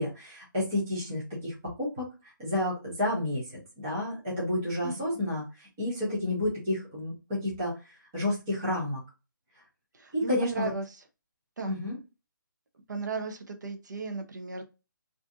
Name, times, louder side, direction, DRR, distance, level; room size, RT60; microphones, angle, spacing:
voice 1, 0.0-3.4 3.8-7.8 8.1-9.0 10.1-10.7 11.7-12.0, left 1 dB, 5° right, -7 dB, 0.4 m, -30 dB
voice 2, 4.8-5.2 9.9-10.8 11.6-11.8 12.9-14.6, right 4 dB, 60° right, 6 dB, 0.7 m, -35 dB
2.5 x 2.4 x 3.6 m, 0.29 s
hypercardioid pair, 180°, 11 cm